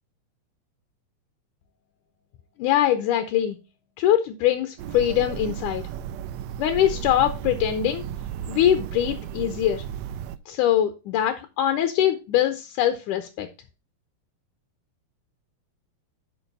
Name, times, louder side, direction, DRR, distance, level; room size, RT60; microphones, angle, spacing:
voice 1, 2.6-3.6 4.0-5.9 6.6-8.1 8.5-9.8 10.5-13.5, left 11 dB, 80° left, 8 dB, 2.2 m, -23 dB
sound 1, 4.8-10.4, right 10 dB, 85° right, 1.5 m, -34 dB
7.1 x 5.3 x 5.3 m, 0.29 s
omnidirectional pair, 3.6 m